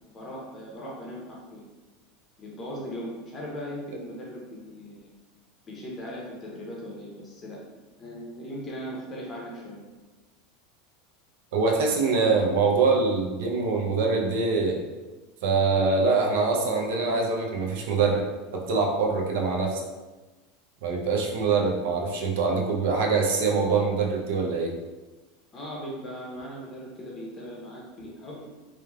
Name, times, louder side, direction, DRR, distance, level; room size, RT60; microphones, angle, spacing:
voice 1, 0.0-1.6 2.4-5.1 5.7-7.6 8.0-9.8 25.5-28.4, equal, 25° left, -3 dB, 0.6 m, -38 dB
voice 2, 11.5-14.8 15.4-18.2 18.7-19.8 20.8-24.7, right 4 dB, 75° right, 1 dB, 0.5 m, -24 dB
3.0 x 2.0 x 2.3 m, 1.2 s
supercardioid pair, 115°, 0 cm